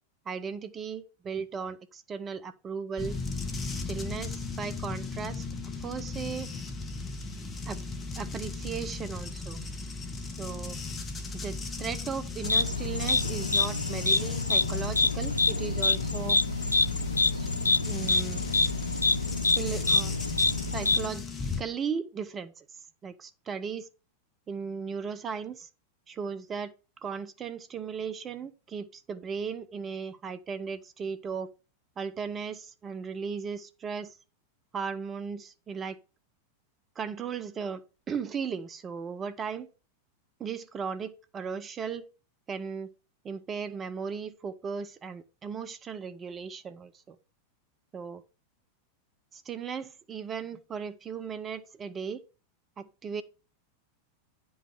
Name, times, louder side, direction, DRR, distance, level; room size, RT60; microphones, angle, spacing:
voice 1, 0.3-3.2 3.9-5.4 5.8-6.5 7.7-7.8 8.2-9.6 10.4-10.8 11.4-16.4 17.3-17.5 17.8-18.4 19.6-20.1 20.7-21.3 21.6-22.6 23.0-23.9 24.5-25.7 26.1-26.7 27.0-31.5 32.0-34.2 34.7-36.0 37.0-37.8 38.1-39.7 40.4-42.0 42.5-42.9 43.2-47.2 47.9-48.2 49.3-52.2 52.8-53.2, right 6 dB, 25° right, 0.7 m, -36 dB
sound 1, 3.0-21.6, left 3 dB, 20° left, 1.5 m, -37 dB
sound 2, 12.4-21.1, left 3 dB, 80° left, 0.3 m, -26 dB
9.7 x 5.5 x 3.5 m
figure-of-eight pair, 90°, 0 cm